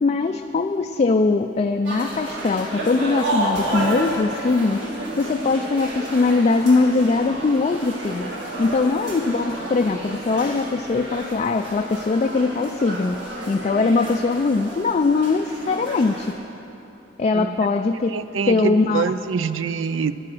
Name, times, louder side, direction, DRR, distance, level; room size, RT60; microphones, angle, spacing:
voice 1, 0.0-4.8 5.2-8.3 8.6-16.4 17.2-18.2 18.5-19.1, left 3 dB, 35° left, 6 dB, 0.3 m, -21 dB
sound 1, 1.8-16.3, right 1 dB, 65° right, 2.2 m, -31 dB
voice 2, 17.3-17.7 18.1-20.1, right 5 dB, 90° right, 14 dB, 0.5 m, -25 dB
12.0 x 10.5 x 6.1 m, 2.9 s
head